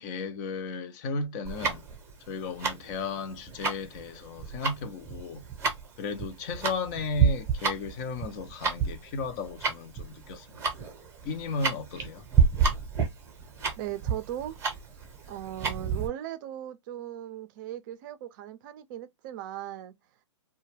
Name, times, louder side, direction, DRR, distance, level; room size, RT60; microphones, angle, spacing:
voice 1, 0.0-1.8 2.3-5.4 6.0-10.6 11.2-12.3, left 3 dB, 35° left, 0.6 m, -34 dB
Tick-tock, 1.4-16.1, right 6 dB, 15° right, 0.8 m, -29 dB
voice 2, 13.8-14.6 15.3-19.9, right 12 dB, 40° right, 0.5 m, -38 dB
2.2 x 2.1 x 3.1 m
hypercardioid pair, 130°, 16 cm